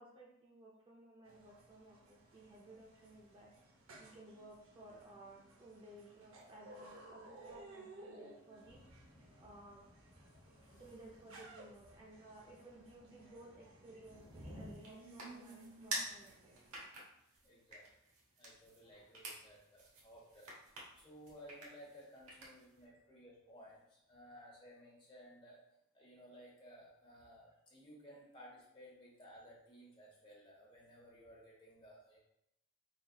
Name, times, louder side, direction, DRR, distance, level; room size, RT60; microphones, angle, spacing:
voice 1, 0.0-3.5 4.0-8.8 9.4-9.8 10.7-17.0 18.8-19.1 22.8-23.0, right 1 dB, 25° right, -3 dB, 0.5 m, -57 dB
sound 1, 1.2-16.8, right 2 dB, 65° right, 0.8 m, -58 dB
Thunder / Rain, 8.6-14.7, equal, 5° right, 1.0 m, -58 dB
sound 2, 14.1-22.8, right 2 dB, 85° right, 1.2 m, -49 dB
voice 2, 17.4-17.9 18.4-20.5 21.0-25.6 25.9-32.2, equal, 25° left, -4 dB, 1.1 m, -57 dB
4.0 x 3.9 x 2.3 m, 0.82 s
head